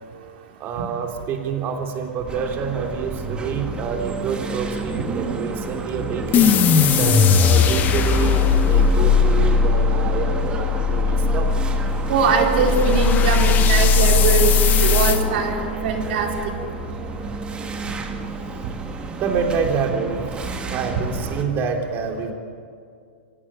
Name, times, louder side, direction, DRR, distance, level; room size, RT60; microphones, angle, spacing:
voice 1, 0.6-6.6 7.0-11.5 19.2-22.3, right 6 dB, 35° right, 3 dB, 3.4 m, -27 dB
sound 1, 2.3-21.4, right 4 dB, 15° right, 2.2 m, -29 dB
sound 2, 6.3-15.2, left 5 dB, 30° left, 1.5 m, -18 dB
voice 2, 12.1-16.3, right 5 dB, 65° right, 1 dB, 4.1 m, -21 dB
25.5 x 16.5 x 8.9 m, 2.2 s
hypercardioid pair, 125°, 6 cm